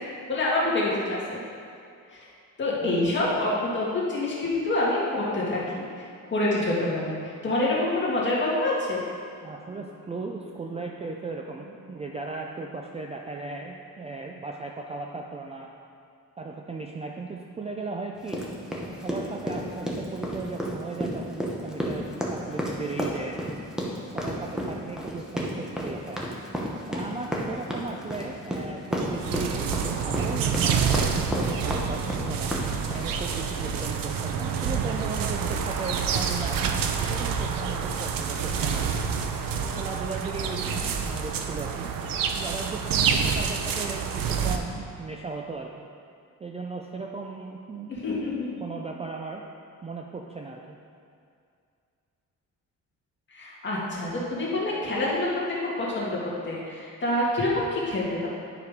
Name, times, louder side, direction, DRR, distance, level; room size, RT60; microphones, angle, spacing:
voice 1, 0.3-1.4 2.1-2.2 2.6-9.0 47.9-48.5 53.3-55.3 55.8-56.2 56.5-58.3, left 2 dB, 35° left, -6 dB, 2.0 m, -27 dB
voice 2, 9.4-15.7 16.4-18.4 19.0-22.0 22.3-23.6 24.1-26.3 26.9-32.5 32.9-36.6 37.1-38.8 39.7-41.9 42.3-45.9 46.4-47.9 48.6-49.4 49.8-50.8, right 3 dB, 20° right, 0 dB, 0.4 m, -36 dB
sound 1, 18.3-33.2, equal, ahead, 1.0 m, -31 dB
sound 2, 28.9-44.6, right 6 dB, 80° right, 0.7 m, -28 dB
9.7 x 5.0 x 5.1 m, 2.3 s
cardioid pair, 145°, 34 cm